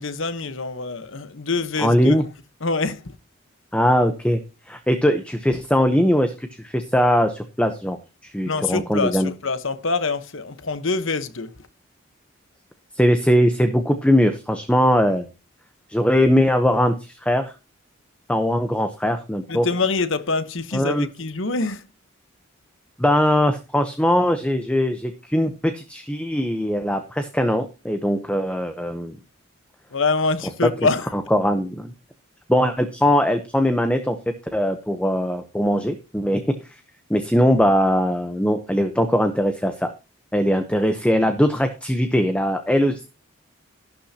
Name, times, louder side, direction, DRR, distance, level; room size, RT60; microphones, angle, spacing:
voice 1, 0.0-2.2 2.6-3.1 8.4-11.5 19.5-21.8 29.9-31.1, left 3 dB, 65° left, 1.1 m, -25 dB
voice 2, 1.8-2.2 3.7-4.4 4.7-8.0 8.2-9.3 13.0-15.3 15.9-17.5 18.3-19.7 20.7-21.1 23.0-29.2 31.1-31.9 32.5-34.2 34.5-36.8 37.1-39.9 40.3-43.0, equal, 5° left, 0.8 m, -20 dB
12.0 x 11.5 x 2.8 m
head